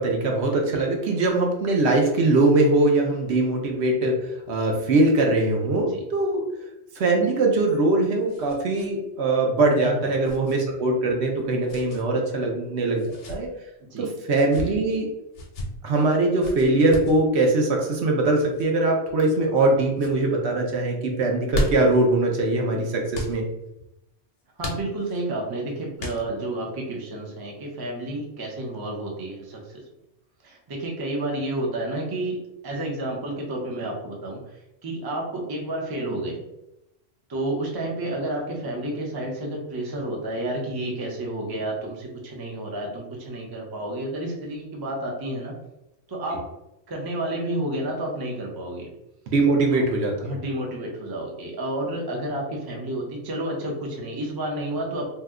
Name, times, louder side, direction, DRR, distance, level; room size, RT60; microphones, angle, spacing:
voice 1, 0.0-6.4 7.0-13.5 14.0-15.1 15.8-23.5 49.3-50.3, right 2 dB, 70° right, 1 dB, 0.9 m, -22 dB
sound 1, 7.7-8.9 9.2-9.3 10.2-10.5 11.7-12.0 12.9-13.4 14.3-14.7 15.3-15.7 16.4-17.2 18.4-18.7 19.3-19.7 19.9-20.2 21.2-22.0 23.1-23.4 24.6-25.2 26.0-26.5, left 1 dB, 75° left, 1.0 m, -33 dB
voice 2, 9.8-10.1 13.8-14.1 24.6-29.8 30.4-36.4 37.3-45.6 46.1-46.5 46.9-48.9 49.7-49.9 50.2-55.1, right 1 dB, 30° right, -1 dB, 0.5 m, -30 dB
2.8 x 2.2 x 3.5 m, 0.87 s
omnidirectional pair, 1.2 m